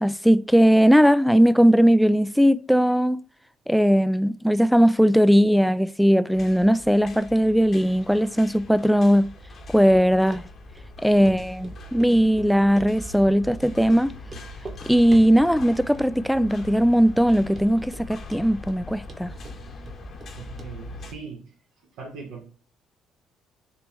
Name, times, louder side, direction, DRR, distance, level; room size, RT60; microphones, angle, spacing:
voice 1, 0.0-3.2 3.7-9.3 9.7-10.4 11.0-14.1 14.9-19.3, equal, ahead, 0.3 m, -19 dB
sound 1, 6.3-21.1, left 1 dB, 50° left, 1.2 m, -41 dB
Run, 10.3-10.4 10.8-10.9 11.2-11.4 11.6-12.1 12.4-13.2 13.5-13.6 13.9-14.0 14.3-14.8 15.1-15.6 15.9-16.4 16.7-16.8 17.2-17.3 17.6-18.1 18.3-18.8 19.1-20.3 20.6-20.7 21.0-21.1, right 2 dB, 40° right, 1.2 m, -42 dB
voice 2, 20.3-21.5 22.0-22.5, right 5 dB, 80° right, 1.0 m, -40 dB
4.5 x 2.9 x 3.4 m
supercardioid pair, 80°, 0 cm